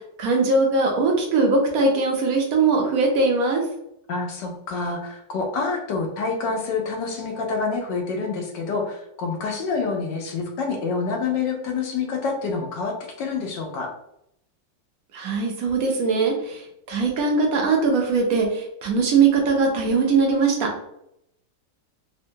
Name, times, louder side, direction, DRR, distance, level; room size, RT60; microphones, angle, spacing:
voice 1, 0.2-3.6 15.1-20.7, right 4 dB, 65° right, 1 dB, 1.0 m, -21 dB
voice 2, 4.1-13.9, left 4 dB, 80° left, 2 dB, 1.2 m, -27 dB
3.5 x 2.1 x 2.7 m, 0.77 s
omnidirectional pair, 1.9 m